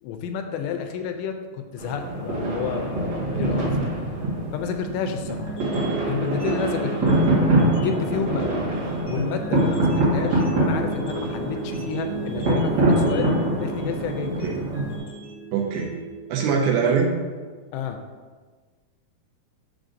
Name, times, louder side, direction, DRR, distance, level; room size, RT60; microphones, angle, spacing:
voice 1, 0.0-3.9 4.5-5.5 6.1-7.3 7.8-8.7 9.1-13.3 13.6-14.6 17.7-18.0, left 7 dB, 85° left, 6 dB, 2.7 m, -30 dB
sound 1, 1.8-15.0, right 1 dB, 55° right, 2.3 m, -24 dB
sound 2, 5.4-17.4, right 4 dB, 65° left, 0.9 m, -36 dB
voice 2, 15.5-15.9 16.3-17.1, right 6 dB, 80° right, 0 dB, 2.5 m, -22 dB
6.9 x 6.1 x 2.6 m, 1.4 s
omnidirectional pair, 5.0 m